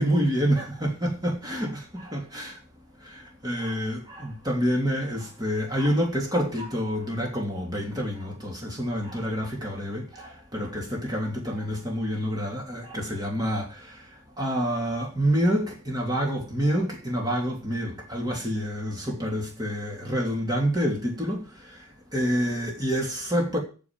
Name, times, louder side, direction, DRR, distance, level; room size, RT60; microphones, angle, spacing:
voice 1, 0.0-2.6 3.0-21.8 22.1-23.6, equal, 20° right, 3.1 m, -28 dB
9.6 x 7.1 x 9.0 m
head